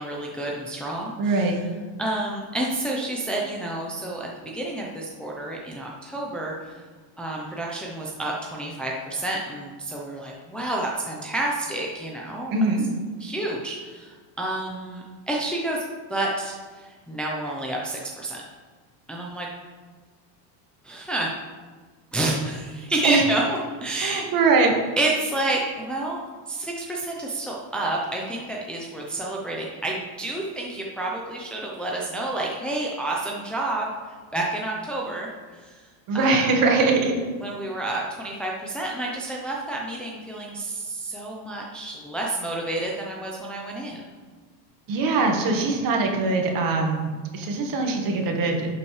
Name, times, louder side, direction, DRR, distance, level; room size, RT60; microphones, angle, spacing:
voice 1, 0.0-1.5 2.0-6.8 7.2-12.5 13.2-15.8 16.1-18.4 19.1-19.5 20.8-21.3 22.1-24.2 25.0-26.2 26.5-35.8 36.1-36.5 37.4-44.0, right 2 dB, ahead, -3 dB, 0.7 m, -29 dB
voice 2, 1.2-1.5 12.5-12.8 23.0-23.2 24.0-24.8 36.1-37.2 44.9-48.7, right 3 dB, 40° right, 2 dB, 1.6 m, -22 dB
11.0 x 5.8 x 3.3 m, 1.4 s
supercardioid pair, 135°, 50 cm